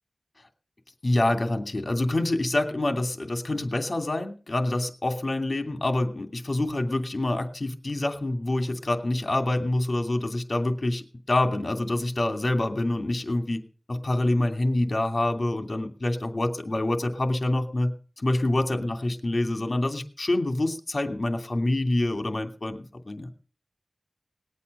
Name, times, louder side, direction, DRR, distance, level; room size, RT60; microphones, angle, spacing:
voice 1, 1.0-13.6 13.9-17.9 18.2-23.3, left 1 dB, 55° left, 7 dB, 2.8 m, -26 dB
20.0 x 8.4 x 6.7 m, 0.38 s
wide cardioid pair, 55°, 0 cm